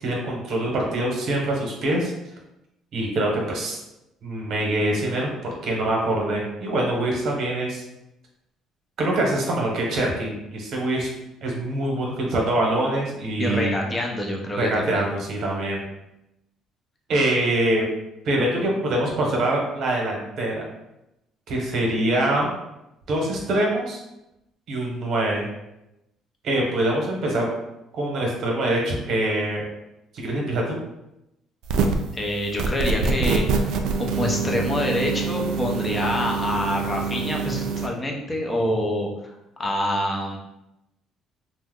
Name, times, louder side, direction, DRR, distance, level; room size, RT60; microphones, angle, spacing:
voice 1, 0.0-2.1 2.9-3.8 4.2-5.3 5.6-7.8 9.0-11.1 11.4-13.7 14.6-15.8 17.1-17.8 18.2-20.6 21.5-22.5 23.1-24.0 24.7-25.5 26.4-27.5 27.9-29.7 30.1-30.8, right 1 dB, 60° right, -1 dB, 0.9 m, -24 dB
voice 2, 13.4-15.0 32.1-39.1 39.6-40.4, left 1 dB, 20° left, 0 dB, 0.6 m, -26 dB
sound 1, 31.6-32.1 32.6-37.9, right 5 dB, 75° right, 0.3 m, -25 dB
2.7 x 2.1 x 3.6 m, 0.89 s
cardioid pair, 105°, 0 cm